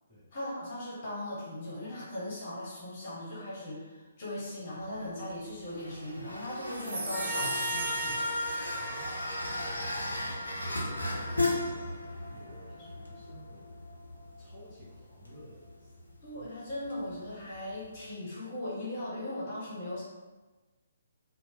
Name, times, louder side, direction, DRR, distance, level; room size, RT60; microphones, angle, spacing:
voice 1, 0.3-8.2 16.2-20.0, left 1 dB, 40° left, -7 dB, 1.0 m, -38 dB
sound 1, 4.8-18.1, left 2 dB, 75° left, 0.5 m, -38 dB
sound 2, 6.7-9.3, right 2 dB, 55° right, 0.6 m, -38 dB
Trumpet, 7.1-11.7, equal, 5° right, 0.7 m, -37 dB
voice 2, 8.7-13.9 14.4-16.0, left 1 dB, 15° left, -12 dB, 0.9 m, -53 dB
3.0 x 2.1 x 2.9 m, 1.2 s
figure-of-eight pair, 130°, 0 cm